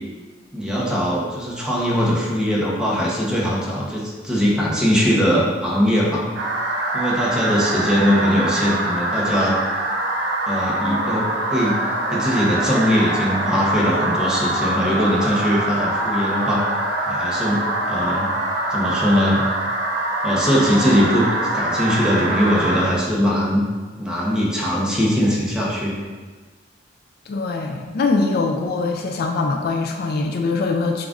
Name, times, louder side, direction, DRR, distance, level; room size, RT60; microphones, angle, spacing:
voice 1, 0.5-6.3 6.9-9.5 10.5-11.8 12.1-16.7 17.1-18.3 18.7-19.4 20.2-21.3 21.5-23.6 24.0-26.1, equal, 5° right, -6 dB, 0.8 m, -21 dB
sound 1, 6.3-22.8, right 1 dB, 85° right, 0.8 m, -24 dB
voice 2, 27.3-31.1, left 3 dB, 60° left, 2 dB, 0.4 m, -22 dB
6.9 x 2.5 x 2.5 m, 1.4 s
head